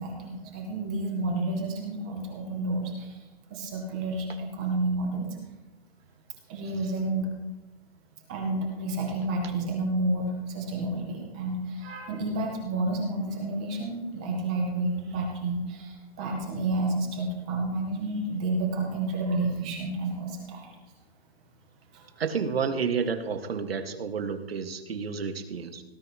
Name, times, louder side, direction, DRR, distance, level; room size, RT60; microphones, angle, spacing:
voice 1, 0.0-3.2 3.5-5.4 6.5-7.3 8.3-20.8 21.9-22.1, right 2 dB, 5° right, 1 dB, 0.6 m, -30 dB
voice 2, 22.2-25.8, right 6 dB, 65° right, 6 dB, 1.8 m, -30 dB
18.0 x 11.5 x 3.0 m, 1.1 s
hypercardioid pair, 175°, 32 cm